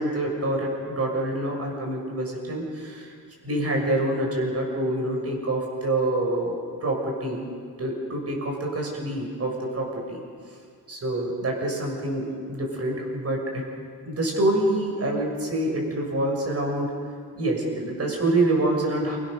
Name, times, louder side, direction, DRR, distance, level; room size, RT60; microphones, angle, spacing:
voice 1, 0.0-3.1 3.4-6.6 6.8-7.5 7.8-10.2 10.9-13.6 14.1-16.9 17.3-19.2, right 1 dB, 35° right, 0 dB, 6.9 m, -26 dB
28.5 x 24.5 x 6.7 m, 2.1 s
wide cardioid pair, 145°, 40 cm